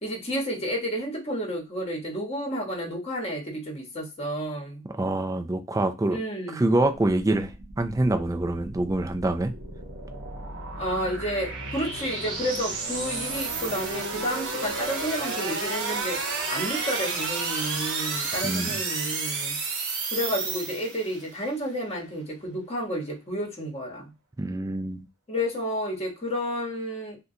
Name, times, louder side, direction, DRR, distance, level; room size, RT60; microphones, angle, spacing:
voice 1, 0.0-4.9 6.1-6.6 10.8-16.2 16.5-19.6 20.1-24.1 25.3-27.2, equal, 30° left, 1.0 m, -31 dB
voice 2, 5.0-6.2 6.5-7.5 7.8-9.5 18.4-18.8 24.4-25.1, right 2 dB, 15° right, 0.4 m, -25 dB
sound 1, 6.9-21.3, right 4 dB, 60° right, 0.9 m, -32 dB
3.7 x 2.2 x 2.7 m
head